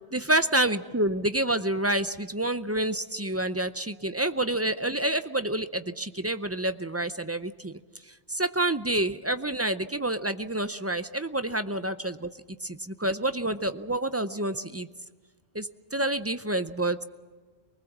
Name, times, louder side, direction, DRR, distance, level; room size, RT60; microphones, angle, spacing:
voice 1, 0.1-7.7 8.1-12.3 12.6-14.9 15.5-17.1, right 1 dB, 20° right, 11 dB, 0.4 m, -28 dB
23.5 x 19.5 x 7.3 m, 1.4 s
omnidirectional pair, 1.1 m